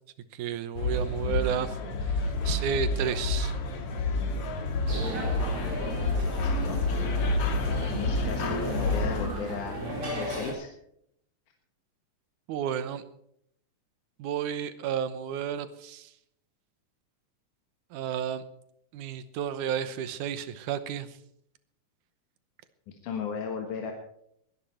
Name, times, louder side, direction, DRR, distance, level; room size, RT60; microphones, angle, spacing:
voice 1, 0.3-1.8 2.0-3.5 12.5-13.0 14.2-16.1 17.9-18.4 18.9-21.1, right 8 dB, 90° right, 12 dB, 2.5 m, -32 dB
sound 1, 0.8-9.3, left 2 dB, 55° left, 2.5 m, -29 dB
sound 2, 4.9-10.5, right 1 dB, 45° right, 5.0 m, -35 dB
voice 2, 7.7-9.8 10.0-10.7 23.0-23.9, left 6 dB, 80° left, 3 dB, 2.9 m, -35 dB
21.0 x 11.5 x 4.4 m, 0.72 s
omnidirectional pair, 3.5 m